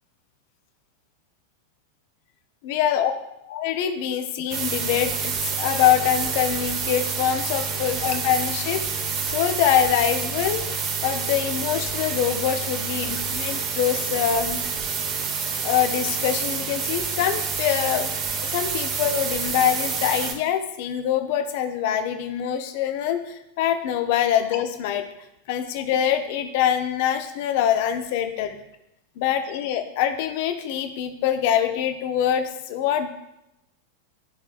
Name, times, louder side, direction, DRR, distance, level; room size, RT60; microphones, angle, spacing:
voice 1, 2.6-3.1 3.4-8.8 9.2-14.6 15.6-25.0 25.5-28.6 29.2-33.1, left 10 dB, 50° left, 8 dB, 0.6 m, -24 dB
sound 1, 4.5-20.3, right 5 dB, 35° right, 0.9 m, -28 dB
11.5 x 4.0 x 2.3 m, 0.88 s
figure-of-eight pair, 90°, 0 cm